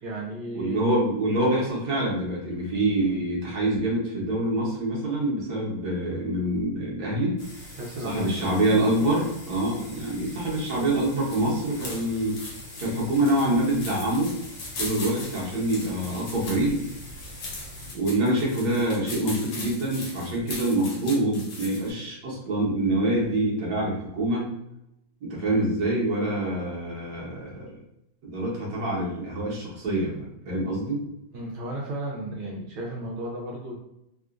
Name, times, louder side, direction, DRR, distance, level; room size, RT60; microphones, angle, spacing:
voice 1, 0.0-0.8 7.7-8.5 12.1-12.2 31.3-33.8, right 1 dB, 80° right, -2 dB, 1.5 m, -34 dB
voice 2, 0.5-7.3 8.0-12.4 12.8-14.3 14.8-16.8 17.9-24.5 25.2-27.8 28.2-31.0, right 1 dB, 55° right, -4 dB, 1.4 m, -26 dB
sound 1, 7.4-17.9, left 1 dB, 35° left, 0.4 m, -44 dB
sound 2, 11.3-21.9, left 2 dB, 65° left, 1.4 m, -39 dB
3.6 x 2.4 x 2.4 m, 0.84 s
omnidirectional pair, 2.3 m